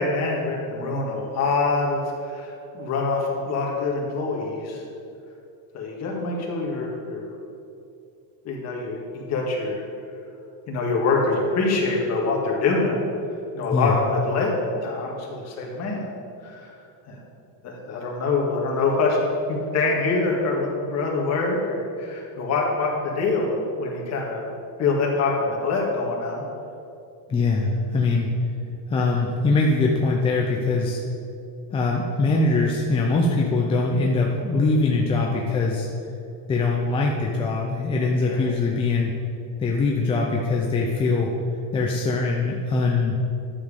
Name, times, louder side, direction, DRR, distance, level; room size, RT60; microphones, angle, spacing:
voice 1, 0.0-4.8 5.7-7.3 8.4-9.8 10.7-13.0 13.5-14.5 14.8-16.1 16.4-16.7 17.1-17.2 17.6-19.2 19.5-24.4 24.8-26.4 38.2-38.4, left 3 dB, 35° left, -2 dB, 2.0 m, -25 dB
voice 2, 27.3-28.3 28.9-31.0 31.7-35.9 36.5-39.1 39.6-41.3 41.7-43.2, left 3 dB, 15° left, -2 dB, 0.4 m, -22 dB
11.0 x 7.4 x 5.1 m, 2.7 s
cardioid pair, 170°, 46 cm